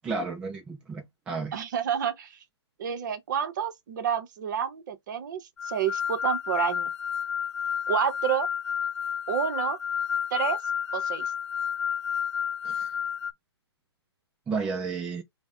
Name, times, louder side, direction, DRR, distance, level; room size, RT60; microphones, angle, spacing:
voice 1, 0.0-1.6 12.6-12.9 14.5-15.2, right 4 dB, 5° right, 0.3 m, -32 dB
voice 2, 1.5-2.4 2.8-6.9 7.9-8.5 9.3-9.8 10.3-10.6 10.9-11.3, right 8 dB, 45° right, 0.7 m, -29 dB
sound 1, 5.6-13.3, left 8 dB, 75° left, 0.4 m, -30 dB
3.4 x 2.1 x 3.6 m
figure-of-eight pair, 135°, 14 cm